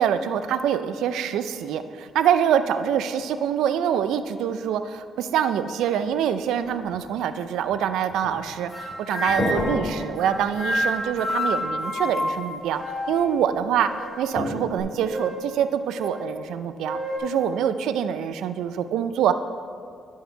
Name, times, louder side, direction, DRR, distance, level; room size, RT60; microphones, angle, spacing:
voice 1, 0.0-12.8 13.1-13.9 14.2-19.3, right 9 dB, 85° right, 11 dB, 0.4 m, -25 dB
sound 1, 6.0-7.2 7.7-8.6 8.9-11.8 13.2-13.3 14.3-14.8, left 1 dB, 30° left, 1.8 m, -32 dB
sound 2, 8.7-9.8 10.2-13.4 13.8-14.4 15.1-15.5 16.0-16.2 16.8-17.2, left 1 dB, ahead, 2.2 m, -29 dB
11.0 x 4.7 x 4.4 m, 2.2 s
cardioid pair, 90°, 0 cm